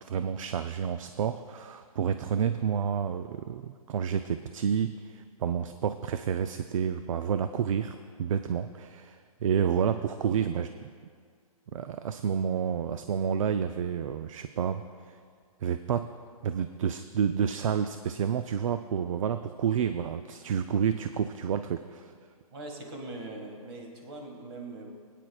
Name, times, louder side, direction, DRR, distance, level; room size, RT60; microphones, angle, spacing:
voice 1, 0.0-10.9 11.7-14.8 15.6-16.1 16.4-22.1, right 8 dB, 60° right, 10 dB, 0.4 m, -29 dB
voice 2, 22.5-24.9, right 2 dB, 45° right, 2 dB, 1.8 m, -41 dB
21.5 x 9.0 x 2.3 m, 2.1 s
hypercardioid pair, 160°, 19 cm